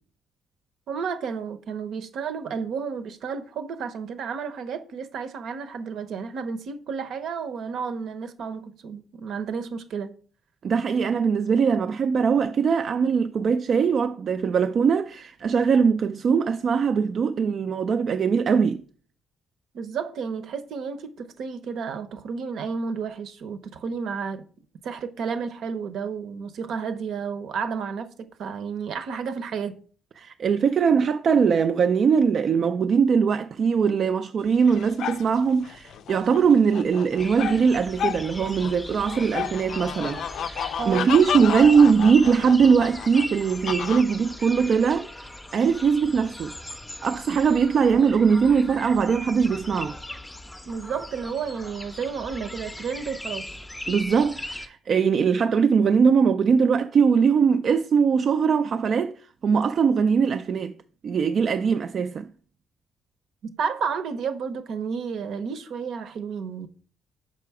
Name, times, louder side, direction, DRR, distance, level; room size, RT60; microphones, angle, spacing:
voice 1, 0.9-10.1 19.7-24.5 24.8-29.8 40.8-41.1 50.7-53.5 63.4-66.7, right 6 dB, 70° right, 0.8 m, -31 dB
voice 2, 10.6-18.8 30.2-46.5 47.0-49.9 53.9-59.1 59.4-60.8 61.0-62.3, right 6 dB, 50° right, 0.3 m, -21 dB
sound 1, 34.5-44.0, left 9 dB, 70° left, 0.4 m, -32 dB
sound 2, 37.2-54.7, left 1 dB, 10° left, 0.6 m, -39 dB
5.8 x 4.9 x 4.8 m
cardioid pair, 100°, 0 cm